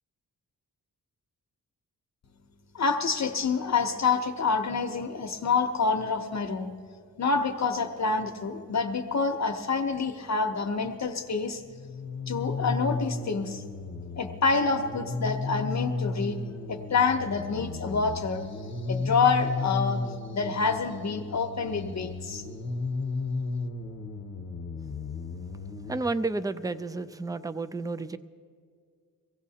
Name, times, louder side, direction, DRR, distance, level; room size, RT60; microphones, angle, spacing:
voice 1, 2.7-6.7 7.2-11.6 12.3-13.6 14.2-16.4 16.7-18.5 18.9-20.0 20.3-22.4, left 4 dB, 50° left, 6 dB, 0.8 m, -27 dB
sound 1, 11.6-26.0, left 3 dB, 85° left, 0.9 m, -34 dB
voice 2, 25.9-28.2, right 3 dB, 10° right, 13 dB, 0.3 m, -31 dB
23.5 x 16.0 x 2.8 m, 2.1 s
wide cardioid pair, 110°, 35 cm